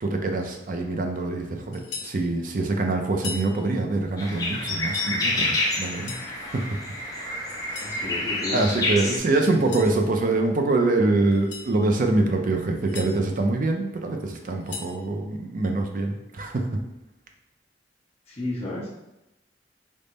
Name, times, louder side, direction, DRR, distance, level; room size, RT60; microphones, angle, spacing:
voice 1, 0.0-6.6 7.7-8.0 8.5-16.6, right 2 dB, 50° right, 3 dB, 0.4 m, -25 dB
sound 1, 1.7-2.2 3.1-3.5 4.6-5.1 5.8-6.3 7.5-8.0 9.4-9.9 11.3-11.7 12.6-13.1 14.4-15.0, left 5 dB, 90° left, 0.7 m, -38 dB
sound 2, 4.2-9.2, left 2 dB, 20° left, 0.7 m, -28 dB
voice 2, 7.8-8.6 9.0-9.1 18.3-19.0, left 1 dB, 35° left, -6 dB, 1.0 m, -33 dB
3.5 x 2.1 x 3.9 m, 0.92 s
head